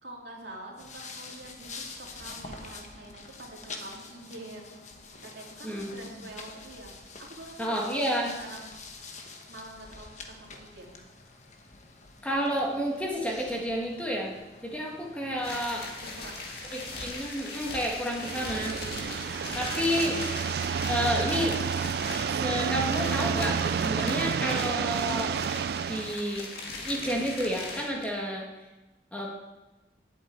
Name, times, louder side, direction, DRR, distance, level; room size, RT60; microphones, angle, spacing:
voice 1, 0.0-4.8 5.2-8.7 9.5-11.0 16.0-16.5, right 1 dB, 80° right, -2 dB, 2.8 m, -46 dB
sound 1, 0.8-17.2, left 4 dB, 40° left, 1.2 m, -47 dB
voice 2, 5.6-6.0 7.6-8.3 12.2-14.3 14.6-15.9 16.7-18.7 19.5-20.2 20.8-21.6 22.4-25.3 25.9-26.5 26.8-28.5 29.1-29.3, equal, 5° left, -2 dB, 1.7 m, -30 dB
sound 2, 15.4-28.0, left 3 dB, 60° left, 2.1 m, -39 dB
sound 3, 18.1-26.2, right 7 dB, 60° right, 0.3 m, -30 dB
8.3 x 7.7 x 8.9 m, 1.1 s
head